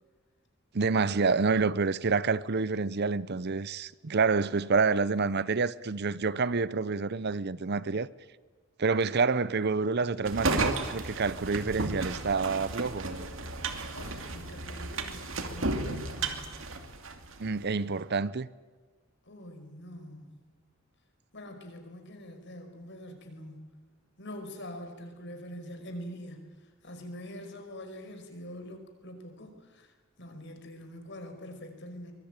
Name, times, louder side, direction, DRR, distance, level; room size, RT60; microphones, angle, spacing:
voice 1, 0.7-8.1 8.8-13.1 17.4-18.5, right 4 dB, 55° right, 0.7 m, -28 dB
sound 1, 10.2-17.4, right 3 dB, 70° right, 2.6 m, -33 dB
voice 2, 13.9-16.5 19.3-20.4 21.3-23.8 24.2-26.5 26.8-32.1, left 1 dB, 60° left, 5.2 m, -44 dB
24.0 x 22.0 x 9.0 m
head